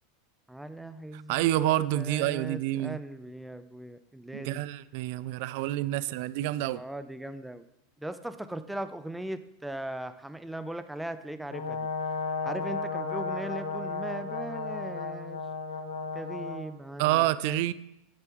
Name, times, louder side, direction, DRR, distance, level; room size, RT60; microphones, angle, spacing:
voice 1, 0.5-4.6 6.7-7.7 8.0-11.9 12.4-15.4 16.1-17.6, right 1 dB, 5° right, 11 dB, 0.5 m, -39 dB
voice 2, 1.1-3.0 4.3-6.8 17.0-17.7, right 15 dB, 60° right, 18 dB, 0.3 m, -28 dB
Brass instrument, 11.5-16.7, left 3 dB, 85° left, 1.6 m, -34 dB
9.0 x 7.6 x 3.0 m, 0.86 s
hypercardioid pair, 90°, 0 cm